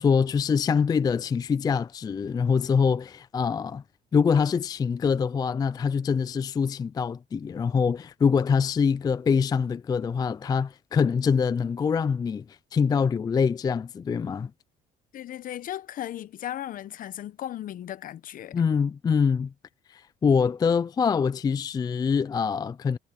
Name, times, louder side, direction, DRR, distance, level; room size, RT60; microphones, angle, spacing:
voice 1, 0.0-3.8 4.1-14.5 18.5-19.5 19.9-23.0, left 6 dB, 25° left, 0.3 m, -24 dB
voice 2, 15.1-18.6, left 12 dB, 55° left, 0.8 m, -36 dB
cardioid pair, 110°, 17 cm